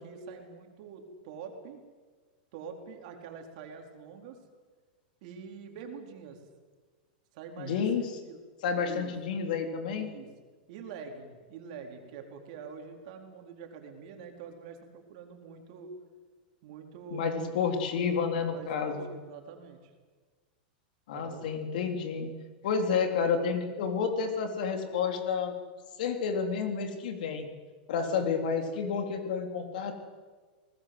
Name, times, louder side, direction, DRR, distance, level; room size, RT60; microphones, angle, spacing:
voice 1, 0.0-1.8 2.5-4.4 5.2-6.4 7.3-8.4 8.8-9.1 9.9-10.3 10.7-15.9 16.6-17.5 18.5-19.9 21.1-21.5 28.0-28.5, right 6 dB, 50° right, 3 dB, 4.3 m, -45 dB
voice 2, 7.6-8.1 8.6-10.1 17.1-19.1 21.1-22.3 22.6-25.5 26.0-27.5 27.9-29.9, left 6 dB, 60° left, 5 dB, 3.8 m, -30 dB
30.0 x 19.5 x 8.1 m, 1.4 s
supercardioid pair, 165°, 5 cm